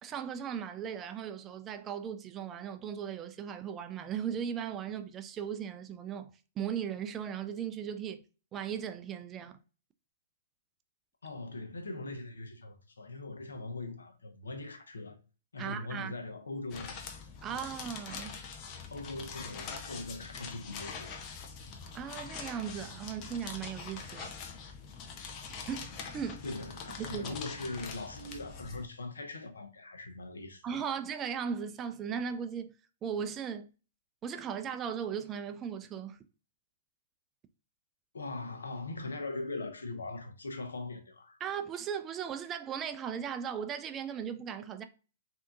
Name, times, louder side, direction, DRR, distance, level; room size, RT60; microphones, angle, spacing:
voice 1, 0.0-8.2 8.5-9.6 15.6-16.1 17.4-18.4 21.9-24.3 25.7-25.9 26.1-26.4 27.0-27.4 30.6-32.8 33.0-33.7 34.2-36.2 41.4-44.8, right 8 dB, 25° right, 0.3 m, -37 dB
voice 2, 11.2-15.2 15.5-17.0 18.9-21.3 26.4-30.6 38.1-41.4, left 2 dB, 85° left, 0.7 m, -41 dB
sound 1, 16.7-28.9, left 5 dB, 35° left, 0.6 m, -44 dB
3.4 x 2.7 x 2.5 m
hypercardioid pair, 120°, 0 cm